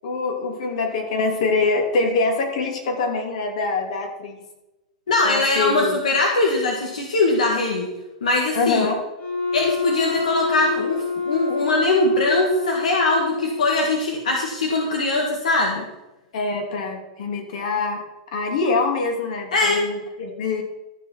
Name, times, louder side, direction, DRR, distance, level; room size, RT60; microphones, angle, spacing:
voice 1, 0.0-4.4 5.2-6.0 8.5-9.0 16.3-18.0 18.3-20.6, left 3 dB, 70° left, 3 dB, 2.8 m, -24 dB
voice 2, 5.1-7.9 8.2-8.9 9.5-15.9 19.5-19.9, left 2 dB, 90° left, 0 dB, 1.9 m, -21 dB
Wind instrument woodwind instrument, 9.2-13.9, left 4 dB, 40° left, 3.6 m, -27 dB
13.0 x 6.6 x 5.8 m, 0.99 s
hypercardioid pair, 120°, 4 cm